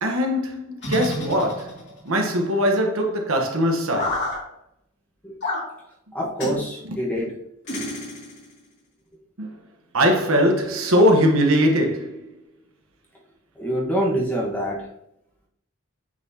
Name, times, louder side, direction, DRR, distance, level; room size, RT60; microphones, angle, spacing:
voice 1, 0.0-4.4 6.8-7.0 9.4-9.5 9.9-12.3, equal, 75° right, 1.1 m, -21 dB
sound 1, 0.8-2.0 3.9-4.4 5.4-5.7 6.4-6.6 7.7-8.5, left 2 dB, 50° left, 2.4 m, -29 dB
voice 2, 6.1-7.3 13.6-14.8, equal, 5° left, 1.3 m, -25 dB
8.7 x 4.1 x 2.8 m
head